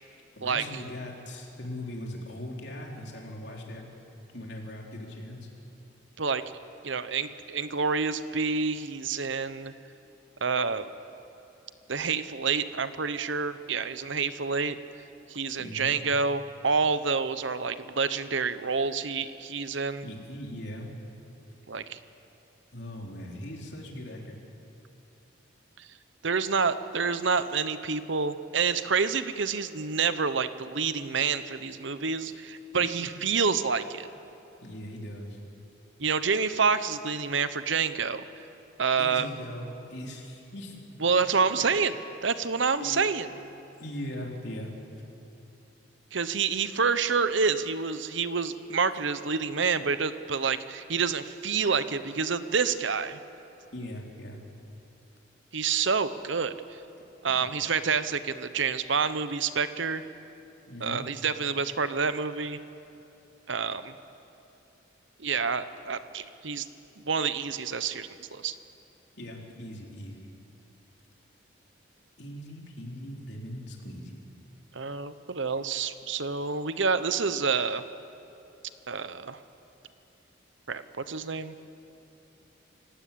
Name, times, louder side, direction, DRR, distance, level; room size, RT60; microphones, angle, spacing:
voice 1, 0.3-3.9 4.3-5.5 15.6-15.9 20.0-20.9 22.7-24.4 32.7-33.1 34.6-35.4 39.0-40.8 41.2-41.6 42.8-43.0 43.8-44.7 53.7-54.4 60.7-61.1 69.2-70.3 72.2-74.2, left 1 dB, 55° left, 0 dB, 3.9 m, -40 dB
voice 2, 6.8-9.7 10.4-10.9 11.9-14.8 15.3-20.1 21.7-22.0 25.8-25.9 26.2-34.1 36.0-38.2 38.8-39.3 41.0-41.9 42.2-43.3 46.1-53.2 55.5-56.8 57.2-60.0 60.8-62.6 63.5-63.9 65.2-66.7 67.0-68.5 74.7-77.8 78.9-79.4 80.7-81.5, right 5 dB, 70° right, 12 dB, 0.9 m, -28 dB
28.5 x 17.0 x 8.7 m, 2.9 s
head